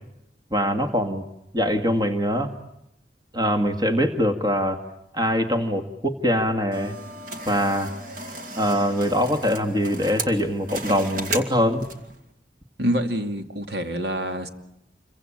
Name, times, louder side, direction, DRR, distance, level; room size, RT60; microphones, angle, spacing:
voice 1, 0.5-1.2 1.5-2.5 3.3-4.8 5.1-7.0 7.5-7.9 8.6-11.8, equal, 25° right, 6 dB, 1.9 m, -23 dB
sound 1, 6.7-12.2, right 2 dB, 50° right, 2.7 m, -35 dB
voice 2, 12.8-14.5, equal, 70° right, 6 dB, 2.4 m, -26 dB
28.5 x 24.0 x 8.7 m, 0.82 s
head